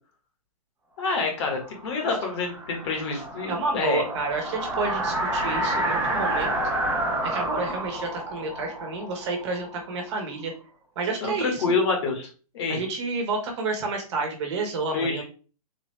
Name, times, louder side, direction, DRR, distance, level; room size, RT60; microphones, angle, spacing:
voice 1, 1.0-4.0 11.2-12.3 12.5-12.8 14.9-15.2, left 4 dB, 45° left, 2 dB, 1.4 m, -27 dB
sound 1, 1.4-10.2, right 1 dB, 10° right, 0.9 m, -29 dB
voice 2, 3.5-6.5 7.2-10.5 10.9-11.6 12.7-15.2, right 3 dB, 45° right, 3 dB, 1.4 m, -30 dB
3.9 x 2.9 x 3.2 m, 0.36 s
hypercardioid pair, 145°, 20 cm